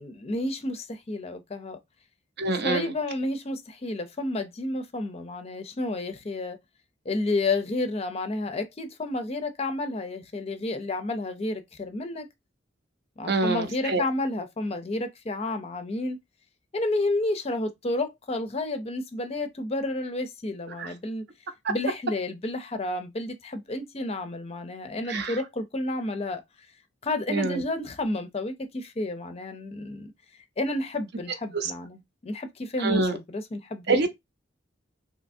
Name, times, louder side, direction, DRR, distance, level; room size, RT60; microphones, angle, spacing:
voice 1, 0.0-1.8 2.6-6.6 7.1-12.3 13.2-16.2 16.7-21.2 21.7-26.4 27.0-30.1 30.6-34.1, left 2 dB, 30° left, 0.5 m, -31 dB
voice 2, 2.4-2.9 13.3-14.0 20.8-20.9 21.6-21.7 25.1-25.4 27.3-27.6 31.5-31.7 32.8-33.2 33.9-34.1, right 3 dB, 55° right, 0.6 m, -26 dB
3.3 x 2.8 x 2.6 m
head